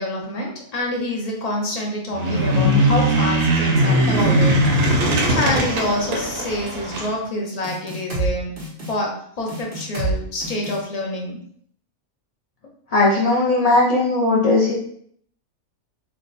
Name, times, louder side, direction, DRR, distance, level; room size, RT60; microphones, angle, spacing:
voice 1, 0.0-5.0 5.3-8.5 8.9-11.4, left 1 dB, 35° left, -1 dB, 0.6 m, -27 dB
sound 1, 2.1-7.1, right 1 dB, 80° right, 1.3 m, -19 dB
sound 2, 7.6-8.3 8.6-8.9 9.5-10.1 10.4-10.8, right 3 dB, 40° right, 1.3 m, -27 dB
voice 2, 12.9-14.7, left 2 dB, 75° left, -4 dB, 0.3 m, -17 dB
3.5 x 2.2 x 3.9 m, 0.62 s
omnidirectional pair, 1.5 m